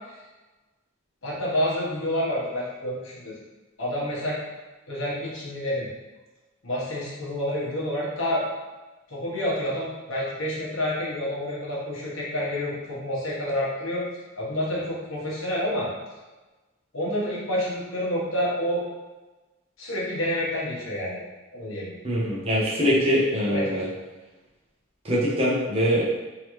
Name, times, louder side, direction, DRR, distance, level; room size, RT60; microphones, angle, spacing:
voice 1, 1.2-3.3 3.8-4.4 4.9-5.9 6.6-8.4 9.1-14.0 14.4-15.9 16.9-18.8 19.8-21.2 21.5-21.9 23.5-23.7, left 1 dB, 70° left, -6 dB, 1.3 m, -28 dB
voice 2, 22.0-23.9 25.0-26.0, equal, 30° right, -6 dB, 0.9 m, -23 dB
3.8 x 3.0 x 3.1 m, 1.2 s
head